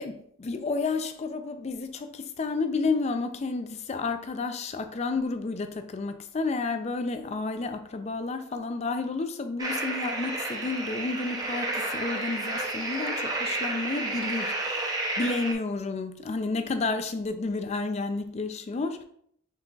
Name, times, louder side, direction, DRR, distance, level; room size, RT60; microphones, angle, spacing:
voice 1, 0.0-14.7 15.2-19.0, left 3 dB, 35° left, 0.4 m, -31 dB
sound 1, 9.6-15.5, right 2 dB, 20° right, 0.6 m, -31 dB
5.7 x 3.7 x 2.3 m
head